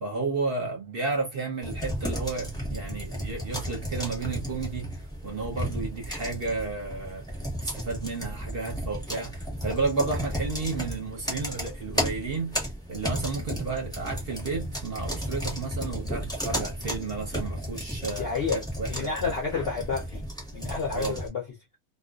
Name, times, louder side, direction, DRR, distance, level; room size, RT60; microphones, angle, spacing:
voice 1, 0.0-7.2 7.6-19.3 20.9-21.2, right 3 dB, 50° right, 0.8 m, -32 dB
sound 1, 1.6-21.3, equal, 5° left, 0.7 m, -34 dB
voice 2, 18.1-20.2 20.5-21.4, left 5 dB, 60° left, 0.6 m, -30 dB
2.3 x 2.3 x 2.3 m
omnidirectional pair, 1.6 m